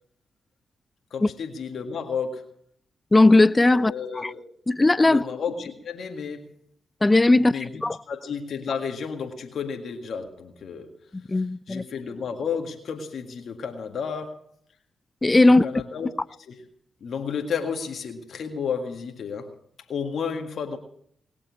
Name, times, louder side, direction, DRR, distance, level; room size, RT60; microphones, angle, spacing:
voice 1, 1.1-2.4 3.7-4.4 5.1-6.5 7.4-10.9 11.3-14.4 15.4-16.1 16.4-16.6 17.0-19.5 19.9-20.8, left 6 dB, 65° left, 1.9 m, -32 dB
voice 2, 3.1-4.3 4.7-5.2 7.0-7.5 7.8-8.0 11.3-11.8 15.2-15.6, left 2 dB, 25° left, 0.6 m, -17 dB
20.5 x 7.4 x 8.6 m
supercardioid pair, 45°, 0 cm